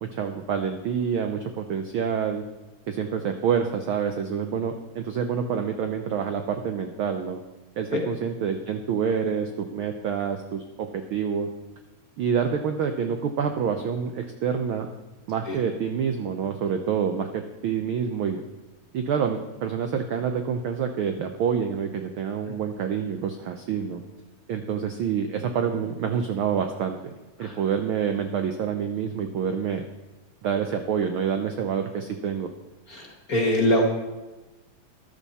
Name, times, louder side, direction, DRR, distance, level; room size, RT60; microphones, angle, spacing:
voice 1, 0.0-2.4 2.9-7.4 7.8-11.5 12.2-14.9 15.3-18.4 18.9-24.0 24.5-27.1 27.4-29.8 30.4-32.5, right 7 dB, 80° right, 7 dB, 1.2 m, -27 dB
voice 2, 32.9-33.9, left 1 dB, 40° left, 0 dB, 1.4 m, -23 dB
14.0 x 12.0 x 4.2 m, 1.1 s
omnidirectional pair, 3.3 m